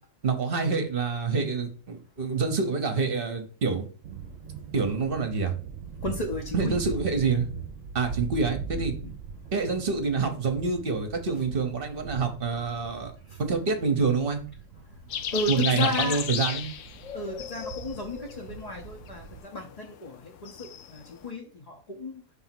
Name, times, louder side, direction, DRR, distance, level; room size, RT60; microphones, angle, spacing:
voice 1, 0.2-3.8 4.7-5.5 6.5-7.5 7.9-8.9 9.5-13.1 13.4-14.4 15.5-16.7, right 4 dB, 40° right, 6 dB, 1.1 m, -27 dB
sound 1, 4.0-19.4, right 6 dB, 60° right, 1.0 m, -41 dB
voice 2, 6.0-6.8 9.0-9.1 13.3-13.4 14.8-16.2 17.1-22.2, left 1 dB, 30° left, -1 dB, 0.9 m, -34 dB
sound 2, 15.1-21.3, left 9 dB, 65° left, 0.9 m, -34 dB
6.0 x 3.5 x 5.9 m, 0.39 s
omnidirectional pair, 1.5 m